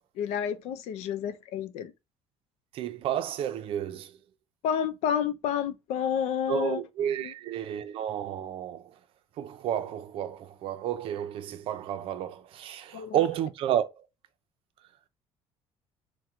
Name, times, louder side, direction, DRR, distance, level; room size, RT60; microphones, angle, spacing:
voice 1, 0.2-1.9 4.6-6.8 7.2-7.3 12.9-13.2, left 8 dB, 80° left, 0.6 m, -30 dB
voice 2, 2.7-4.1 6.5-8.9 9.4-14.1, right 10 dB, 55° right, 0.5 m, -31 dB
4.4 x 2.2 x 3.7 m
cardioid pair, 170°, 11 cm